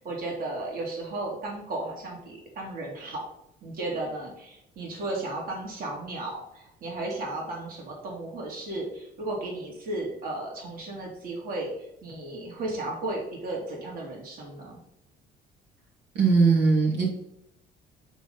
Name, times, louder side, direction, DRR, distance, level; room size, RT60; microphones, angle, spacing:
voice 1, 0.0-3.2 3.6-11.7 12.0-14.8, right 2 dB, 60° right, -1 dB, 2.6 m, -34 dB
voice 2, 16.1-17.0, right 4 dB, 85° right, -3 dB, 2.5 m, -20 dB
8.1 x 4.0 x 5.6 m, 0.80 s
cardioid pair, 110°, 17 cm